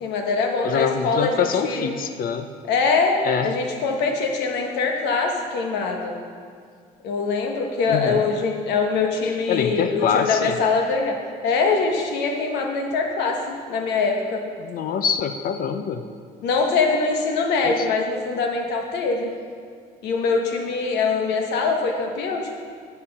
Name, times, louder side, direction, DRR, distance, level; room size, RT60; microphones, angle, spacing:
voice 1, 0.0-1.9 2.7-3.2 3.4-6.2 7.0-11.2 11.4-14.4 16.4-19.3 20.0-22.5, left 4 dB, 90° left, 2 dB, 1.2 m, -23 dB
voice 2, 0.6-2.5 3.2-3.6 7.9-8.3 9.5-10.6 14.6-16.0 17.6-17.9, left 7 dB, 60° left, 8 dB, 0.6 m, -24 dB
9.9 x 6.5 x 5.4 m, 2.1 s
cardioid pair, 110°, 17 cm